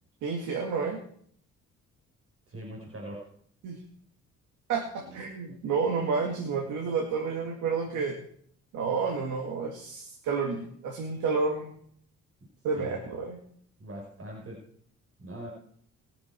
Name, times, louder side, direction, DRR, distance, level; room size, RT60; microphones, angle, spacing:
voice 1, 0.2-1.0 3.6-3.8 4.7-8.2 8.7-11.8 12.6-13.4, right 5 dB, 85° right, 1 dB, 2.3 m, -30 dB
voice 2, 2.5-3.3 12.8-13.0 13.8-14.6 15.2-15.5, right 1 dB, 50° right, -2 dB, 4.9 m, -41 dB
21.5 x 7.3 x 4.7 m, 0.62 s
cardioid pair, 90°, 30 cm